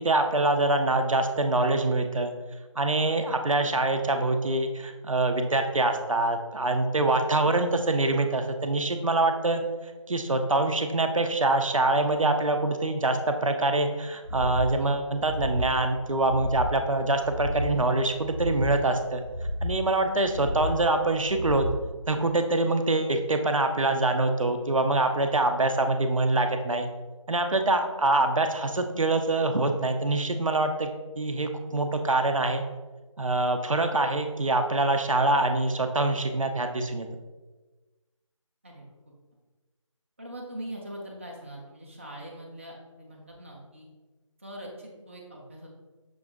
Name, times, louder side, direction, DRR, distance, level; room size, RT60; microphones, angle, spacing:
voice 1, 0.0-2.3 2.8-19.2 19.6-21.7 22.1-26.9 27.3-30.9 31.2-32.6 33.2-37.1, right 2 dB, 75° right, 6 dB, 0.6 m, -25 dB
sound 1, 14.2-14.7 15.1-15.7 16.2-16.8 17.2-17.8 18.2-18.8 19.2-19.8 20.2-20.8 21.2-21.8, left 1 dB, 85° left, 0.9 m, -32 dB
voice 2, 40.2-43.9 44.4-45.7, right 1 dB, 25° right, -3 dB, 0.5 m, -42 dB
6.1 x 2.5 x 3.4 m, 1.2 s
figure-of-eight pair, 160°, 17 cm